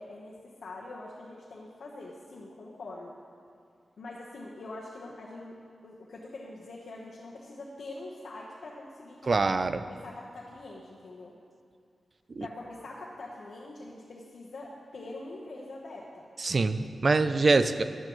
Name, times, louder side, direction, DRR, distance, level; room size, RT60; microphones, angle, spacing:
voice 1, 0.0-3.2 4.0-5.6 5.8-9.5 9.9-11.3 12.4-16.3, left 2 dB, 70° left, -5 dB, 1.1 m, -44 dB
voice 2, 9.3-9.7 12.3-12.5 16.4-17.8, right 3 dB, 35° right, 11 dB, 0.4 m, -24 dB
15.0 x 11.5 x 3.1 m, 2.3 s
wide cardioid pair, 180°, 0 cm